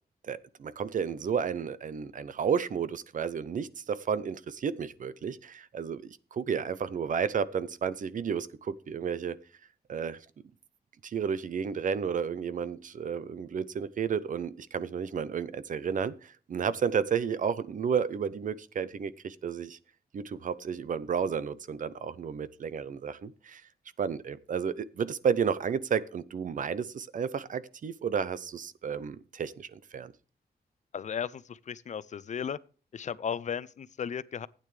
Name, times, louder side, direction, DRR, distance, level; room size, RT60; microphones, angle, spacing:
voice 1, 0.2-9.4 9.9-10.3 11.0-19.8 20.1-23.6 24.0-30.1, right 7 dB, 55° right, 0.7 m, -32 dB
voice 2, 30.9-32.6 32.9-34.5, left 7 dB, 50° left, 0.5 m, -35 dB
15.5 x 9.1 x 3.3 m
wide cardioid pair, 160°, 16 cm